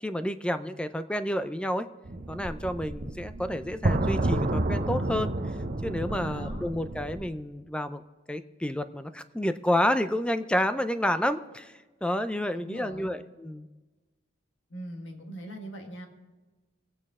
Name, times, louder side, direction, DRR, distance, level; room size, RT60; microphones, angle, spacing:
voice 1, 0.0-1.9 2.3-5.3 5.8-8.0 8.3-11.7 12.0-13.7, left 1 dB, 5° left, 11 dB, 0.4 m, -29 dB
sound 1, 2.0-7.3, right 2 dB, 45° right, 0.8 m, -30 dB
voice 2, 6.1-6.7 12.5-13.1 14.7-16.1, right 1 dB, 75° left, 3 dB, 1.7 m, -41 dB
22.5 x 8.7 x 3.6 m, 1.2 s
head